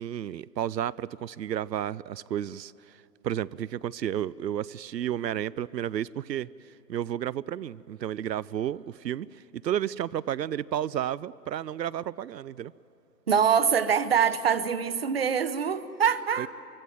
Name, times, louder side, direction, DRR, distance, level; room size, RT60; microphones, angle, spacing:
voice 1, 0.0-12.7 16.4-16.5, right 10 dB, 85° right, 21 dB, 0.6 m, -32 dB
voice 2, 13.3-16.5, right 7 dB, 35° right, 14 dB, 0.9 m, -24 dB
24.5 x 23.5 x 7.7 m, 2.9 s
hypercardioid pair, 160°, 49 cm